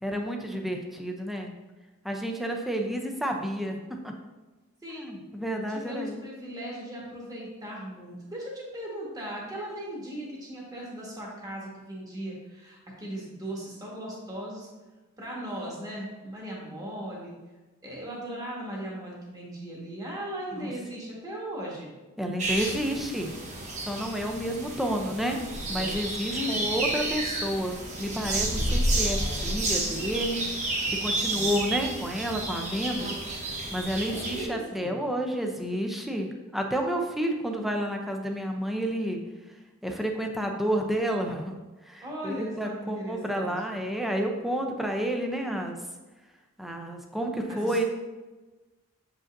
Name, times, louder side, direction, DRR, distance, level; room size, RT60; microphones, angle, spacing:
voice 1, 0.0-1.5 2.0-4.1 5.0-6.2 20.5-20.7 22.2-23.3 23.8-30.7 31.0-33.1 33.4-39.2 39.8-41.5 41.9-45.8 46.6-47.9, equal, ahead, 2 dB, 0.6 m, -30 dB
voice 2, 4.8-5.1 5.7-14.7 15.2-17.4 17.8-22.0 26.3-26.7 34.1-35.0 42.0-43.5 47.5-47.9, equal, 20° right, -4 dB, 1.5 m, -38 dB
sound 1, 22.4-34.5, right 2 dB, 35° right, 0.9 m, -30 dB
7.1 x 5.0 x 2.6 m, 1.2 s
head